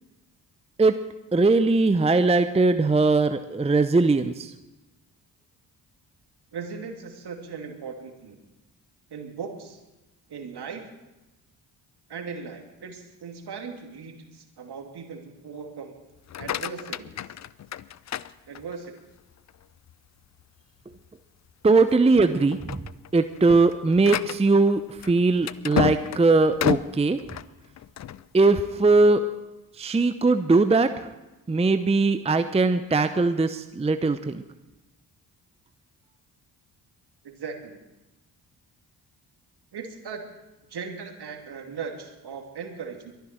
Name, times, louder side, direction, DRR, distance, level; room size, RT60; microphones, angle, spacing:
voice 1, 1.3-4.5 21.6-22.8 23.1-27.2 28.3-29.2 29.8-31.1 31.5-34.4, right 3 dB, 15° right, 10 dB, 0.7 m, -20 dB
voice 2, 6.5-8.4 9.1-9.8 10.3-10.9 12.1-15.9 16.4-17.1 18.5-18.9 37.2-37.8 39.7-40.3 40.7-43.1, right 5 dB, 50° right, 4 dB, 2.5 m, -38 dB
sound 1, 16.2-19.0 19.5-19.9 20.4-20.5 20.9-21.1 21.7-22.0 22.4-28.2, left 10 dB, 35° left, 0.5 m, -31 dB
23.0 x 10.5 x 4.5 m, 1.0 s
hypercardioid pair, 45°, 49 cm